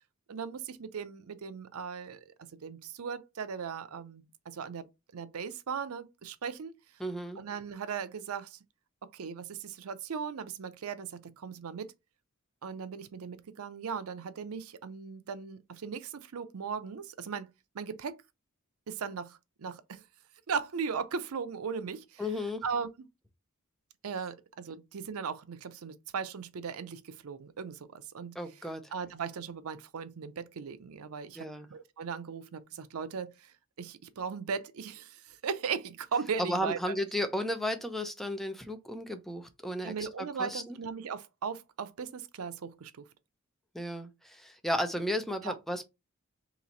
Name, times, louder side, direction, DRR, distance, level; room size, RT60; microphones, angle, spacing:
voice 1, 0.3-2.3 2.6-4.9 5.1-6.8 7.4-8.6 9.1-11.9 12.6-18.2 18.9-20.0 20.5-22.2 22.6-22.9 24.0-28.4 28.9-33.5 33.8-36.9 39.8-43.0 45.4-45.5, right 6 dB, 80° right, 0.5 m, -38 dB
voice 2, 7.0-7.4 22.2-22.6 28.3-28.8 31.4-31.7 36.4-40.8 43.7-45.8, left 1 dB, ahead, 0.6 m, -34 dB
3.1 x 3.0 x 3.9 m
head